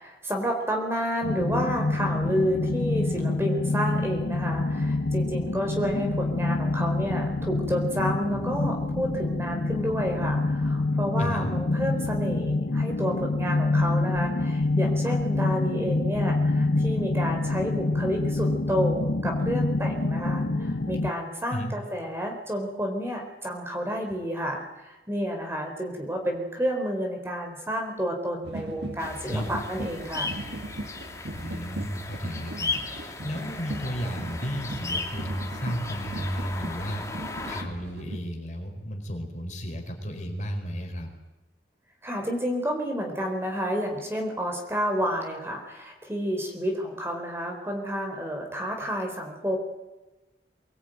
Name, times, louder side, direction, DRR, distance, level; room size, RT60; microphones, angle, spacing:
voice 1, 0.0-30.3 42.0-49.6, equal, 15° right, 2 dB, 4.1 m, -30 dB
sound 1, 1.2-21.1, left 2 dB, 80° left, 1.1 m, -26 dB
voice 2, 11.2-11.5 21.5-21.7 29.3-29.6 31.3-41.1, equal, 40° left, 3 dB, 4.5 m, -33 dB
sound 2, 28.4-38.2, right 1 dB, 80° right, 2.0 m, -39 dB
sound 3, 29.0-37.6, left 3 dB, 15° left, 2.9 m, -36 dB
24.0 x 20.5 x 9.2 m, 1.1 s
head